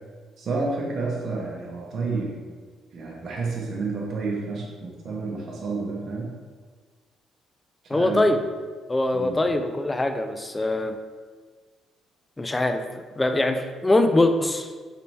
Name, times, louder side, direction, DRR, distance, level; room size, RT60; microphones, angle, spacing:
voice 1, 0.4-2.4 2.9-6.3 7.8-8.2 9.1-9.4, right 3 dB, 60° right, -3 dB, 0.7 m, -30 dB
voice 2, 7.9-8.4 8.9-11.0 12.4-12.9 13.2-14.7, left 2 dB, 20° left, 7 dB, 0.3 m, -22 dB
4.0 x 3.3 x 3.1 m, 1.5 s
cardioid pair, 90°, 0 cm